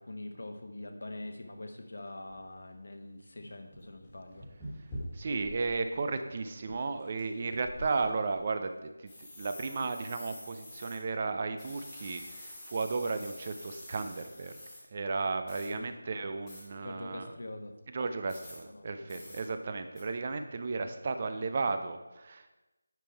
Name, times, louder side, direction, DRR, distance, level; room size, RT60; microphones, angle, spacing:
voice 1, 0.0-4.5 15.7-15.9 16.8-17.7 18.7-19.3, left 2 dB, 60° left, 5 dB, 1.2 m, -44 dB
sound 1, 2.3-2.4 3.0-3.1 3.4-5.8 6.2-6.3 6.6-7.2 7.6-8.4 9.1-11.0 11.6-14.8 15.5-15.7 16.5-16.6 18.3-18.6 19.1-19.4 20.0-20.1, left 1 dB, 10° left, 1.6 m, -46 dB
voice 2, 5.1-14.6 14.9-17.3 17.9-22.5, right 4 dB, 25° right, 8 dB, 0.4 m, -34 dB
9.1 x 5.3 x 4.4 m, 1.0 s
figure-of-eight pair, 175°, 0 cm